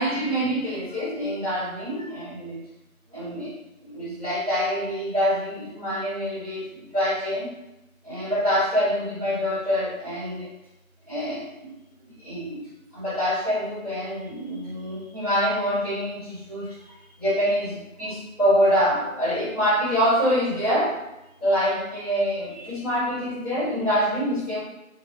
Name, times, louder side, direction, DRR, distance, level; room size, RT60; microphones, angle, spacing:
voice 1, 0.0-2.6 3.1-7.5 8.0-10.5 11.1-11.7 12.2-12.7 12.9-16.9 17.2-21.0 21.4-24.6, equal, 25° right, -13 dB, 1.4 m, -25 dB
3.9 x 3.3 x 2.4 m, 0.92 s
figure-of-eight pair, 180°, 43 cm